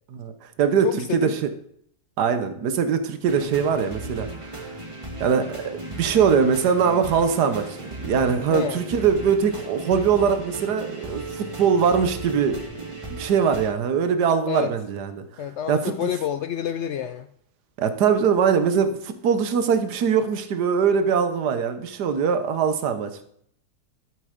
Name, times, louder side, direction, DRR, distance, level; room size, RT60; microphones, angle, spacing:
voice 1, 0.1-0.9 1.1-1.3 2.2-4.7 5.2-5.4 5.7-12.6 13.1-15.2 15.7-15.9 17.8-23.2, right 6 dB, 75° right, 9 dB, 1.6 m, -22 dB
voice 2, 0.8-1.4 8.5-8.9 14.5-14.7 15.4-17.3, left 9 dB, 85° left, 11 dB, 0.6 m, -28 dB
sound 1, 3.3-13.7, right 2 dB, 20° right, 1.5 m, -36 dB
12.5 x 7.7 x 5.1 m, 0.67 s
omnidirectional pair, 1.8 m